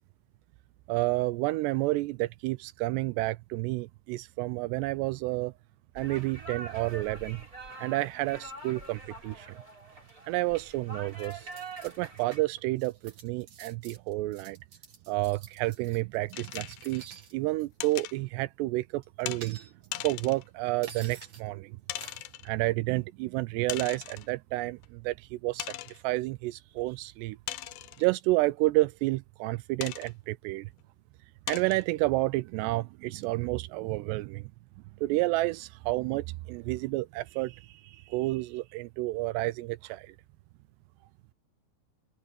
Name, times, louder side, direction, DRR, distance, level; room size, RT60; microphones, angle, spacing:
voice 1, 0.9-5.5 6.0-7.4 7.8-9.6 10.3-11.5 11.8-14.6 15.1-19.7 20.0-22.1 22.4-27.4 28.0-30.7 31.5-34.5 35.0-40.2, right 20 dB, 85° right, 2.5 m, -30 dB
sound 1, 5.9-12.4, right 3 dB, 20° right, 6.6 m, -45 dB
sound 2, 11.2-12.2 12.6-17.3 17.6-17.9 19.0-20.1 20.8-21.5 22.0-22.3, right 6 dB, 45° right, 3.2 m, -50 dB
sound 3, 16.3-17.1 17.8-18.2 19.3-19.4 19.9-20.5 21.2-21.3 21.9-22.5 23.7-24.3 24.8-24.9 25.6-26.0 27.5-28.1 29.8-30.1 30.8-30.9 31.5-31.8, left 15 dB, 85° left, 2.1 m, -39 dB
omnidirectional pair, 5.2 m